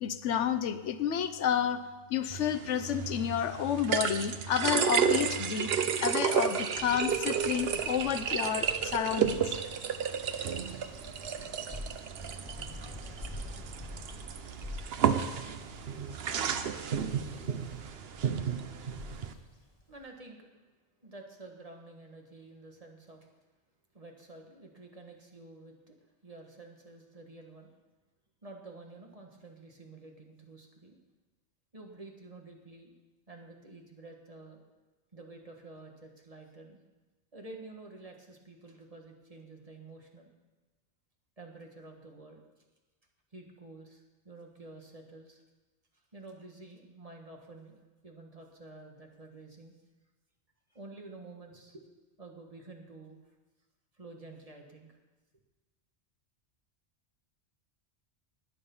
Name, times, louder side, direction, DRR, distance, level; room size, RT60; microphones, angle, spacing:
voice 1, 0.0-1.8 2.1-5.7 6.0-9.6, left 8 dB, 85° left, 12 dB, 1.0 m, -30 dB
sound 1, 2.3-19.3, right 7 dB, 60° right, 0.9 m, -32 dB
Bird vocalization bird call bird song, 6.8-20.0, left 1 dB, 30° left, 1.9 m, -47 dB
voice 2, 19.9-20.5 21.0-23.3 23.9-25.9 26.2-27.7 28.4-31.0 31.7-32.9 33.3-34.6 35.1-36.8 37.3-40.3 41.4-42.4 43.3-45.4 46.1-49.7 50.7-51.9 52.2-53.2 54.0-55.0, right 2 dB, 30° right, 1 dB, 1.7 m, -50 dB
20.0 x 6.9 x 5.6 m, 1.2 s
omnidirectional pair, 1.2 m